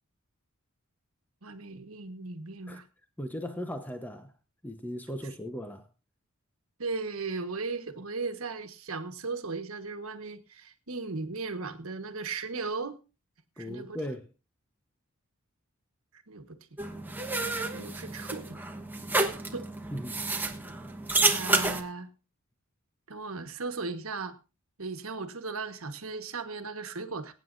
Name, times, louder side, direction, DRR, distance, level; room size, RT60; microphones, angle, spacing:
voice 1, 1.4-2.8 6.8-13.0 13.6-14.0 16.3-16.6 17.5-18.6 19.3-19.7 21.2-22.1 23.1-24.4 24.8-27.3, right 4 dB, 80° right, 1.4 m, -37 dB
voice 2, 3.2-4.3 4.6-5.8 13.6-14.3 19.9-20.2, equal, 10° left, 0.9 m, -37 dB
sound 1, 16.8-21.8, right 2 dB, 10° right, 1.2 m, -30 dB
22.0 x 9.4 x 2.6 m
head